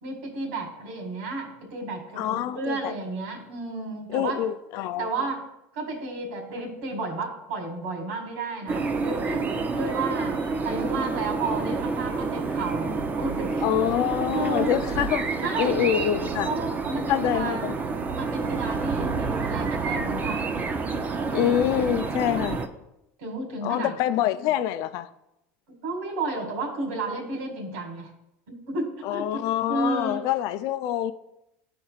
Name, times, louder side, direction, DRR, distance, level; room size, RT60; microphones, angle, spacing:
voice 1, 0.0-4.4 5.0-5.4 5.7-13.6 14.3-14.8 15.4-15.9 16.5-17.7 18.0-20.4 21.1-21.7 22.5-22.7 23.2-23.9 25.8-28.1 28.5-30.2, right 3 dB, 80° right, 2.2 m, -32 dB
voice 2, 2.2-2.9 4.1-5.3 13.6-15.3 15.6-16.5 17.1-17.8 21.3-22.6 23.6-25.1 29.0-31.1, left 11 dB, 65° left, 0.4 m, -26 dB
sound 1, 8.7-22.7, right 4 dB, 25° right, 0.6 m, -29 dB
11.5 x 4.3 x 2.4 m
supercardioid pair, 110°, 7 cm